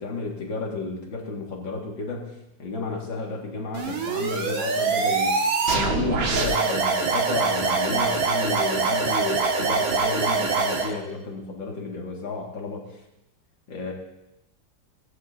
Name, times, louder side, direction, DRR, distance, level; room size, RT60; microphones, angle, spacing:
voice 1, 0.0-2.3 2.6-5.3 5.7-12.8 13.7-13.9, left 3 dB, 80° left, 0 dB, 2.8 m, -32 dB
sound 1, 3.7-10.9, right 4 dB, 85° right, 2.1 m, -24 dB
18.5 x 13.0 x 2.7 m, 0.91 s
omnidirectional pair, 2.0 m